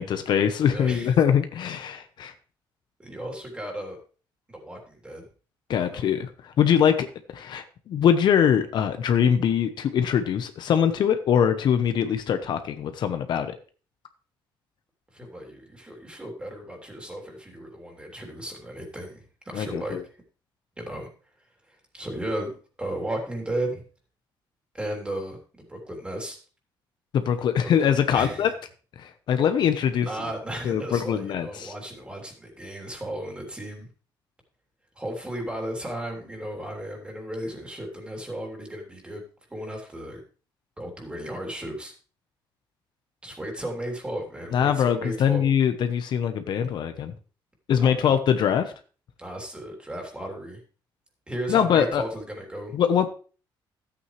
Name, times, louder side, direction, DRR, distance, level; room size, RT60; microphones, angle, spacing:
voice 1, 0.0-2.3 5.7-7.1 7.3-13.6 19.5-20.0 27.1-28.5 29.0-30.1 30.6-31.7 44.5-47.1 47.7-48.7 51.5-52.0 52.7-53.1, left 8 dB, 60° left, 9 dB, 0.9 m, -23 dB
voice 2, 0.6-1.2 3.0-4.0 4.5-5.3 5.9-6.1 15.1-20.0 20.8-21.1 21.7-23.8 24.7-26.4 27.6-28.5 30.0-33.9 34.9-39.2 39.5-40.2 40.8-41.9 43.2-45.4 47.8-48.2 49.2-50.6 51.3-52.7, right 1 dB, 10° right, 1 dB, 3.2 m, -35 dB
12.5 x 8.6 x 3.2 m, 0.37 s
cardioid pair, 135°, 9 cm